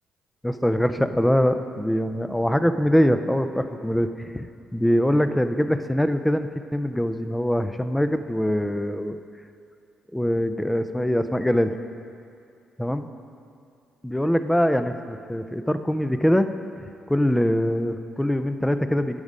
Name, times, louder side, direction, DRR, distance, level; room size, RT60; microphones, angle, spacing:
voice 1, 0.4-4.5 4.7-9.2 10.1-11.7 12.8-13.1 14.0-16.5 16.8-19.2, equal, 5° left, 10 dB, 0.5 m, -23 dB
12.0 x 5.0 x 5.4 m, 2.4 s
cardioid pair, 90°, 0 cm